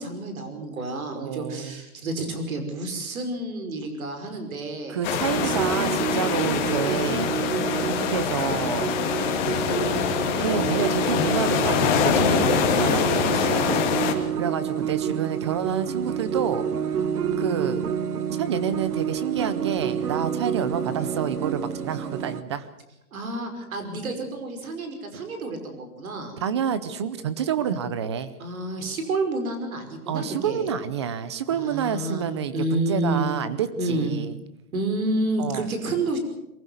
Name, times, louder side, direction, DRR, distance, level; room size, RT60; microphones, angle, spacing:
voice 1, 0.0-5.0 5.4-5.6 6.1-6.5 12.8-13.1 23.1-26.4 28.4-30.7 31.5-32.2 32.5-33.4 33.8-34.1 34.7-36.2, right 2 dB, 65° right, 6 dB, 5.5 m, -29 dB
voice 2, 1.1-1.8 4.9-7.4 7.8-9.0 10.4-13.9 14.3-16.6 17.4-17.9 18.4-22.7 26.4-28.3 30.1-34.4 35.4-35.7, right 8 dB, 20° right, 14 dB, 0.6 m, -28 dB
sound 1, 5.0-14.1, left 8 dB, 30° left, 2.3 m, -24 dB
sound 2, 5.3-22.4, right 8 dB, 90° right, 1.6 m, -28 dB
23.0 x 15.5 x 8.0 m, 0.92 s
hypercardioid pair, 165°, 44 cm